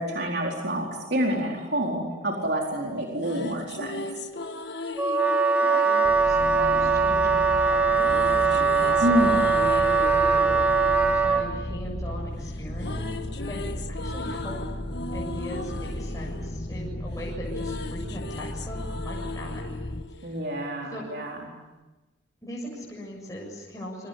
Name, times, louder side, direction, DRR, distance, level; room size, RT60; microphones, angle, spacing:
voice 1, 0.0-4.0 9.0-9.4 20.2-21.4, equal, 55° right, -1 dB, 4.4 m, -27 dB
sound 1, 2.9-7.1 7.9-12.2 12.5-21.0, left 3 dB, 55° left, 1.7 m, -38 dB
Wind instrument woodwind instrument, 5.0-11.5, right 4 dB, 10° right, 2.3 m, -21 dB
voice 2, 5.6-13.2 13.4-14.6 15.1-19.5 20.1-20.4 20.9-21.0 22.4-24.1, equal, 15° left, -3 dB, 7.4 m, -39 dB
sound 2, 6.0-20.0, left 1 dB, 30° left, 1.4 m, -35 dB
28.5 x 24.5 x 8.4 m, 1.1 s
head